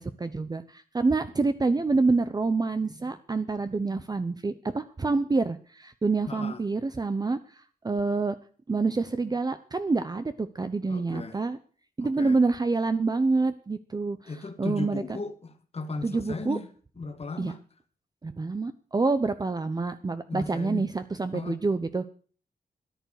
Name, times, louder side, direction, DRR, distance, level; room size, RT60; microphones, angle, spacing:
voice 1, 0.0-8.4 8.7-11.6 12.0-14.3 14.6-15.0 16.0-16.6 17.4-17.5 18.2-22.1, right 3 dB, 25° right, 0.7 m, -27 dB
voice 2, 6.3-6.6 10.9-11.4 12.0-12.4 14.3-16.7 17.0-17.6 20.3-20.8 21.3-21.6, left 3 dB, 40° left, 1.6 m, -36 dB
13.5 x 11.0 x 6.5 m
wide cardioid pair, 135°, 16 cm